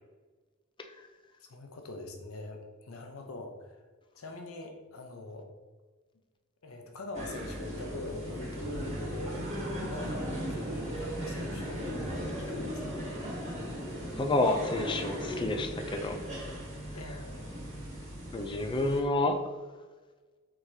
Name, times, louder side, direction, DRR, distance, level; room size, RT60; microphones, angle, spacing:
voice 1, 1.5-3.8 4.1-5.5 6.6-13.0 16.9-17.5, left 2 dB, 80° left, 4 dB, 0.7 m, -43 dB
sound 1, 7.1-19.0, equal, 35° right, 1.3 m, -37 dB
voice 2, 14.1-16.2 18.3-19.4, left 2 dB, 25° left, 5 dB, 0.4 m, -29 dB
4.7 x 3.6 x 2.7 m, 1.3 s
head